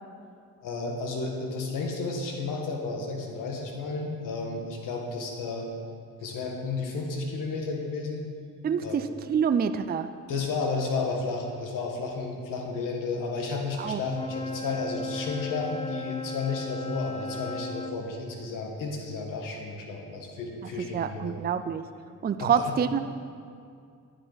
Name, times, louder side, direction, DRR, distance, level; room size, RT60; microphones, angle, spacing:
voice 1, 0.6-5.7 6.2-8.3 8.8-9.0 10.3-21.3 22.4-22.7, left 3 dB, 85° left, 1 dB, 1.6 m, -32 dB
voice 2, 8.6-10.1 13.8-14.0 20.8-21.9 22.2-23.0, right 7 dB, 30° right, 10 dB, 0.4 m, -27 dB
Wind instrument woodwind instrument, 14.0-18.0, left 3 dB, 20° left, 0.7 m, -36 dB
10.0 x 9.8 x 4.1 m, 2.3 s
cardioid pair, 75°, 32 cm